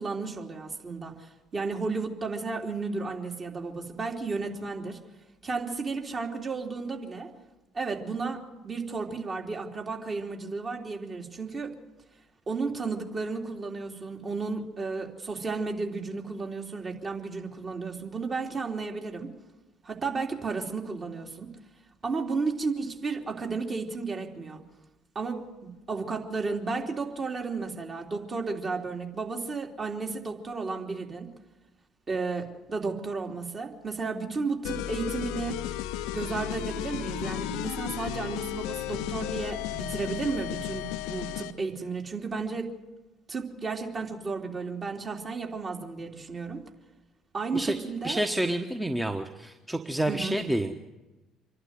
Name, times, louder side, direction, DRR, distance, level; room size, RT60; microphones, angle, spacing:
voice 1, 0.0-5.0 5.4-7.3 7.7-11.7 12.5-19.3 19.8-21.5 22.0-24.6 25.1-31.3 32.1-35.6 36.1-42.7 43.3-46.6 47.3-48.2 50.1-50.4, right 4 dB, 35° right, 1 dB, 3.3 m, -33 dB
sound 1, 34.6-41.6, left 12 dB, 65° left, 0.7 m, -34 dB
voice 2, 48.0-50.7, right 1 dB, 5° right, 5 dB, 1.3 m, -29 dB
26.5 x 12.0 x 9.5 m, 1.1 s
figure-of-eight pair, 55°, 0 cm